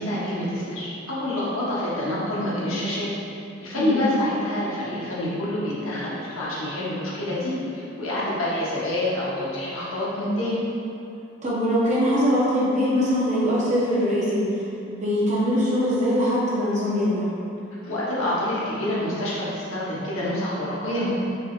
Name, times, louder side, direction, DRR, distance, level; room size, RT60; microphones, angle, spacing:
voice 1, 0.0-3.1 3.6-10.6 17.8-21.1, left 1 dB, 90° left, -8 dB, 1.0 m, -27 dB
voice 2, 11.4-14.4 14.9-17.3, equal, 35° right, -7 dB, 0.9 m, -22 dB
4.7 x 3.1 x 2.4 m, 2.7 s
head